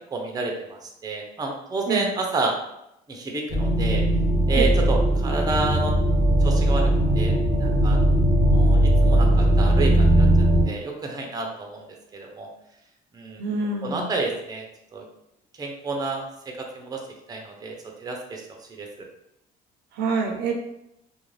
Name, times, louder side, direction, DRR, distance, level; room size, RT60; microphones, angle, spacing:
voice 1, 0.1-2.6 3.1-4.0 4.5-5.9 6.4-6.9 7.1-7.3 7.6-8.0 8.5-10.3 10.7-11.8 12.1-12.5 13.1-13.4 13.8-14.7 14.9-15.0 15.6-16.3 16.7-17.0 17.3-17.7 18.0-18.4 18.8-18.9, right 3 dB, 25° right, 1 dB, 0.5 m, -29 dB
sound 1, 3.5-10.6, right 1 dB, 35° left, 0.8 m, -19 dB
voice 2, 13.4-14.1 19.9-20.5, right 4 dB, 75° right, 2 dB, 0.5 m, -26 dB
2.4 x 2.2 x 3.1 m, 0.82 s
cardioid pair, 110°, 17 cm